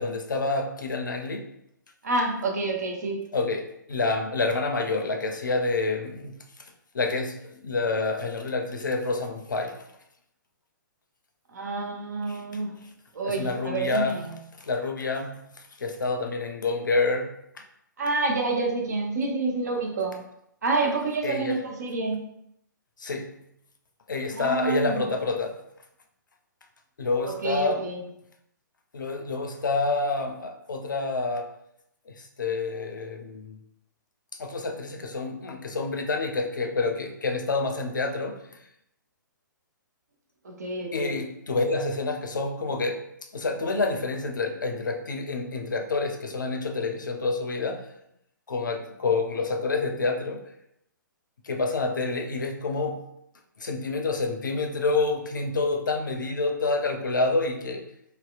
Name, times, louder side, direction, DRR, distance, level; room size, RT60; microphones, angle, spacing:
voice 1, 0.0-1.5 3.3-6.4 6.9-9.8 12.3-12.4 13.2-14.2 14.6-15.5 15.8-17.4 21.2-21.6 23.0-23.3 24.1-25.6 27.0-27.8 28.9-31.5 32.1-33.6 34.4-38.4 40.9-43.0 43.3-47.9 48.5-50.5 51.4-53.1 53.6-57.8, left 3 dB, 70° left, 4 dB, 0.4 m, -28 dB
voice 2, 2.0-3.2 11.5-12.7 13.1-14.4 18.0-20.2 20.6-22.2 24.3-25.1 27.3-28.1 40.4-41.2, right 3 dB, 55° right, 2 dB, 0.5 m, -28 dB
2.6 x 2.0 x 2.3 m, 0.77 s
figure-of-eight pair, 120°, 11 cm